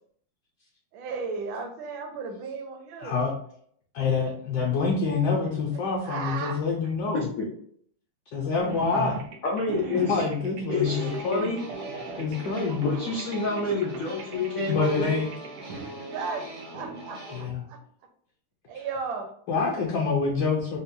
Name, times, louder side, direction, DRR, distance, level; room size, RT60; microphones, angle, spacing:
voice 1, 0.9-3.2 5.4-6.6 12.0-12.1 16.1-17.8 18.7-19.3 19.6-19.7, right 4 dB, 70° right, 5 dB, 1.2 m, -35 dB
voice 2, 3.0-3.3 3.9-7.3 8.3-9.2 9.9-11.5 12.2-12.9 14.6-15.3 17.3-17.6 19.5-20.8, left 4 dB, 70° left, -2 dB, 1.0 m, -26 dB
voice 3, 7.1-7.5 9.4-10.2 10.7-11.6 12.8-15.2, left 3 dB, 90° left, -4 dB, 0.7 m, -28 dB
sound 1, 8.6-16.9, right 4 dB, 90° right, 1.5 m, -39 dB
sound 2, 10.8-17.4, right 1 dB, 55° right, 0.5 m, -41 dB
5.2 x 2.1 x 2.6 m, 0.63 s
omnidirectional pair, 2.4 m